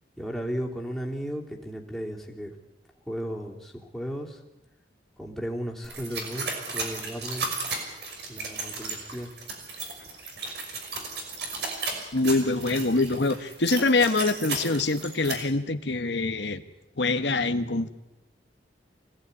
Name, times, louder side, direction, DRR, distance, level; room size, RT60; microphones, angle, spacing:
voice 1, 0.2-2.5 3.1-4.4 5.2-6.5 6.7-7.5 8.3-9.3, equal, ahead, -1 dB, 3.1 m, -35 dB
sound 1, 5.8-15.3, right 3 dB, 70° right, 5.9 m, -34 dB
voice 2, 12.1-16.6 17.0-17.9, left 3 dB, 75° left, 8 dB, 1.3 m, -24 dB
25.0 x 17.0 x 9.7 m, 0.95 s
head